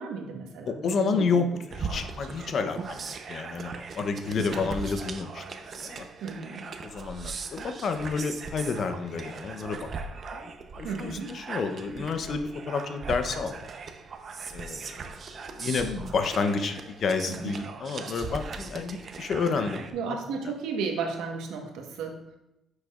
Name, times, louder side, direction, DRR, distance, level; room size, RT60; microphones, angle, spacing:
voice 1, 0.0-1.5 1.9-2.0 2.3-2.4 2.8-2.9 4.4-4.7 6.2-6.6 10.8-11.3 17.4-17.5 19.9-22.2, right 5 dB, 85° right, 2 dB, 1.3 m, -34 dB
voice 2, 0.7-1.5 1.7-5.4 5.7-6.1 6.8-9.9 10.3-10.5 10.8-13.6 14.5-15.1 15.5-20.2, left 5 dB, 60° left, 8 dB, 0.8 m, -30 dB
sound 1, 1.7-19.9, right 4 dB, 55° right, 0.8 m, -39 dB
9.8 x 6.5 x 2.5 m, 0.88 s
supercardioid pair, 75°, 0 cm